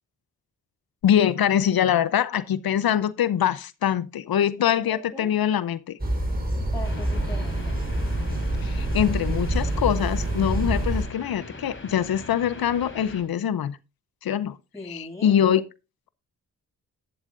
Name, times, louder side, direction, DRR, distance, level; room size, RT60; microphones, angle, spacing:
voice 1, 1.0-6.0 8.6-13.8 14.2-14.6 14.8-15.6, left 9 dB, 70° left, 0.8 m, -23 dB
voice 2, 4.6-5.3 6.5-7.8 14.7-15.4, left 2 dB, 10° left, 7.2 m, -40 dB
sound 1, 6.0-11.0, right 1 dB, 25° right, 4.6 m, -26 dB
sound 2, 6.8-13.2, left 2 dB, 30° left, 3.9 m, -41 dB
12.0 x 10.5 x 2.6 m
supercardioid pair, 40°, 37 cm